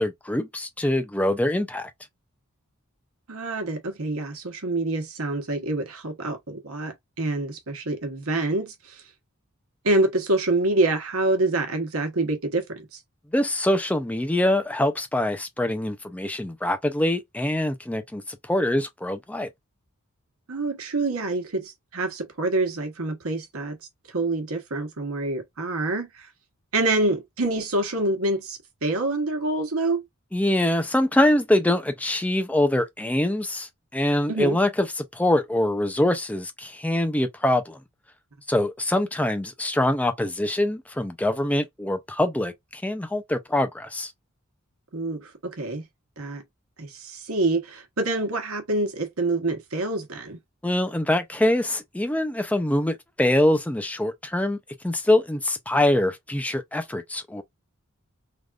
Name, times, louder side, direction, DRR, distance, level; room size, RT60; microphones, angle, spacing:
voice 1, 0.0-1.9 13.3-19.5 30.3-37.8 38.5-44.1 50.6-54.6 54.8-57.4, left 1 dB, 5° left, 0.4 m, -24 dB
voice 2, 3.3-9.0 9.8-13.0 20.5-23.8 24.1-26.3 26.7-30.0 34.3-34.6 44.9-45.8 46.2-46.4 46.8-50.4, right 2 dB, 80° right, 1.0 m, -26 dB
3.4 x 2.4 x 2.3 m
head